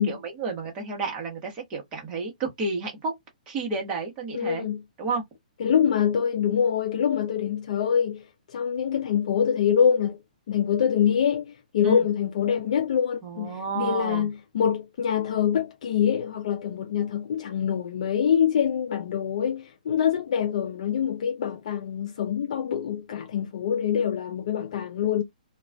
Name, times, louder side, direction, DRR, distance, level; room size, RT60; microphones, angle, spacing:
voice 1, 0.0-3.1 3.5-4.7 5.0-5.2 11.8-12.0 13.2-14.3, right 4 dB, 20° right, 0.9 m, -31 dB
voice 2, 4.3-4.8 5.6-10.2 10.5-25.2, left 8 dB, 50° left, 0.4 m, -25 dB
2.4 x 2.2 x 3.2 m
hypercardioid pair, 160°, 5 cm